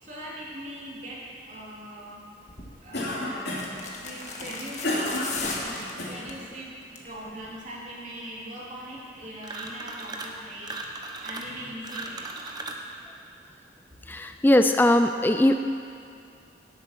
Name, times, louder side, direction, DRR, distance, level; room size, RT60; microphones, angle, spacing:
voice 1, 0.0-2.2 2.8-5.4 6.0-6.7 7.0-10.7 11.2-12.3, right 1 dB, 40° right, -6 dB, 3.2 m, -41 dB
sound 1, 2.5-2.7 3.5-6.4 6.8-7.2 7.4-7.5, left 4 dB, 40° left, 1.5 m, -37 dB
Cough, 2.9-3.8 4.4-6.2, left 1 dB, 60° left, 3.1 m, -30 dB
sound 2, 9.4-10.4 10.6-12.9, right 3 dB, 20° right, 0.9 m, -37 dB
voice 2, 14.1-15.6, left 1 dB, 10° left, 7 dB, 0.3 m, -20 dB
17.5 x 8.1 x 6.0 m, 2.4 s
head